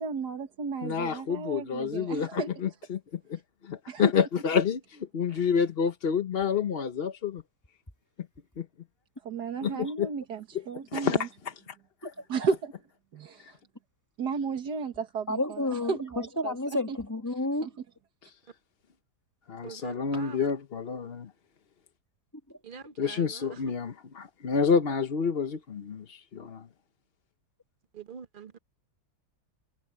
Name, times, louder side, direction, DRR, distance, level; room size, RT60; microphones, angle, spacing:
voice 1, 0.0-2.5 3.9-4.1 5.3-5.5 9.2-11.3 12.3-12.7 13.1-13.6 14.2-16.6 16.9-17.0 17.6-17.7 20.4-20.5, right 5 dB, 85° right, 2.1 m, -33 dB
voice 2, 0.8-3.0 3.3-7.4 8.6-8.7 9.6-10.1 10.9-11.3 11.7-11.8 12.0-12.1 13.4-13.5 19.5-21.3 23.0-26.7, left 6 dB, 45° left, 1.0 m, -29 dB
voice 3, 15.3-17.7, left 1 dB, 10° left, 1.7 m, -30 dB
voice 4, 19.6-20.4 22.6-23.7 27.9-28.6, right 6 dB, 40° right, 0.8 m, -45 dB
omnidirectional pair, 1.7 m